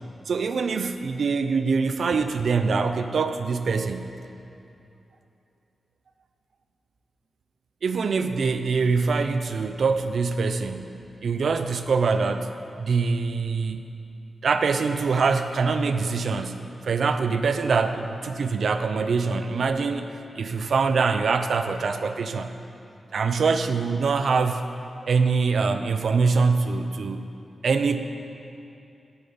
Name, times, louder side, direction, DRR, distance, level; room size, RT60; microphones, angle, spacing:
voice 1, 0.3-4.1 7.8-12.5 12.8-13.8 14.4-22.5 23.1-24.6 25.0-27.3 27.6-28.0, right 4 dB, 65° right, 9 dB, 0.6 m, -24 dB
9.4 x 8.0 x 8.6 m, 2.7 s
wide cardioid pair, 155°, 0 cm